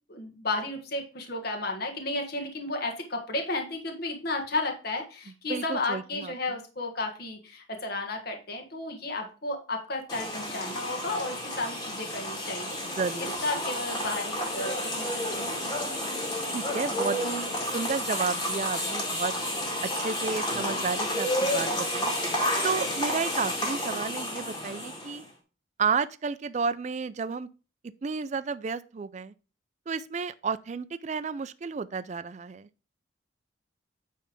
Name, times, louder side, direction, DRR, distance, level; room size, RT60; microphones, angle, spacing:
voice 1, 0.1-12.8 13.4-15.8, left 2 dB, 50° left, 1.4 m, -33 dB
voice 2, 5.5-6.6 12.9-13.3 16.5-19.3 19.8-22.1 22.6-25.2 25.8-27.5 28.0-29.3 29.9-32.7, right 5 dB, 35° right, 0.3 m, -32 dB
sound 1, 10.1-25.2, left 1 dB, 20° left, 1.9 m, -31 dB
9.3 x 3.4 x 5.1 m
head